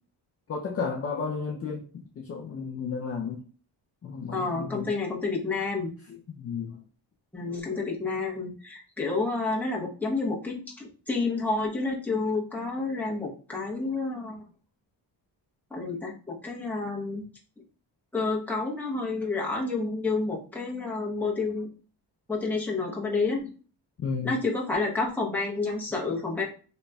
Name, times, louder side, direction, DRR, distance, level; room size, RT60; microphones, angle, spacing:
voice 1, 0.5-3.4 4.0-4.9 6.1-6.8 24.0-24.4, left 5 dB, 35° left, 0 dB, 0.5 m, -33 dB
voice 2, 4.3-5.9 7.3-10.6 11.1-14.4 15.7-17.2 18.1-21.7 22.3-23.4 24.2-26.5, left 3 dB, 5° left, -4 dB, 0.9 m, -29 dB
3.9 x 3.0 x 2.2 m, 0.38 s
cardioid pair, 130°, 43 cm